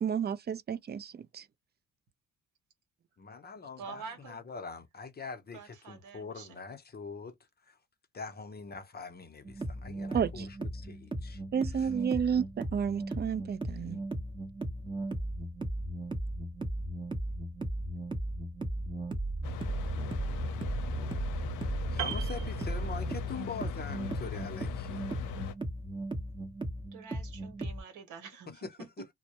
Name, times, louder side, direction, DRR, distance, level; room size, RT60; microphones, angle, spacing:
voice 1, 0.0-1.5 10.1-10.5 11.5-14.0, right 7 dB, 35° right, 0.4 m, -31 dB
voice 2, 3.2-7.4 7.6-7.8 8.1-11.4 11.7-11.9 21.5-25.1 28.5-29.1, left 5 dB, 30° left, 0.7 m, -44 dB
voice 3, 3.8-4.4 5.5-6.5 26.9-28.5, right 6 dB, 90° right, 1.0 m, -46 dB
sound 1, 9.4-27.8, right 1 dB, 15° right, 0.8 m, -36 dB
sound 2, 19.4-25.5, left 7 dB, 80° left, 0.6 m, -40 dB
Piano, 22.0-23.4 23.7-24.0, right 10 dB, 70° right, 0.7 m, -39 dB
2.2 x 2.0 x 2.8 m
cardioid pair, 90°, 30 cm